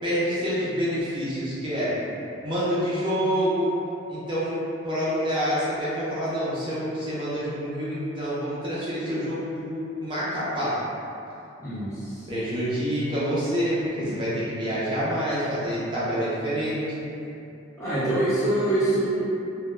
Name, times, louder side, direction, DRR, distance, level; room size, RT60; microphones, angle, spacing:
voice 1, 0.0-1.9 2.4-3.7 4.1-4.6 4.8-10.8 12.3-16.8, equal, 25° right, -9 dB, 0.4 m, -27 dB
voice 2, 11.6-12.3 14.0-14.3 17.8-19.2, right 1 dB, 15° left, -15 dB, 1.0 m, -25 dB
2.2 x 2.1 x 3.0 m, 2.8 s
head